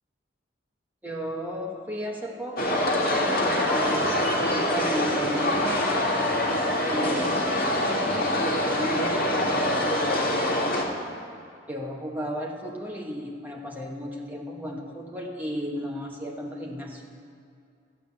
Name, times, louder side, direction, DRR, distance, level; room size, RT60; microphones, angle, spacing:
voice 1, 1.0-4.1 4.5-5.8 6.8-10.2 11.7-17.0, equal, 10° right, -1 dB, 1.1 m, -34 dB
sound 1, 2.6-10.8, left 1 dB, 50° left, 1.7 m, -25 dB
14.0 x 5.0 x 8.6 m, 2.4 s
head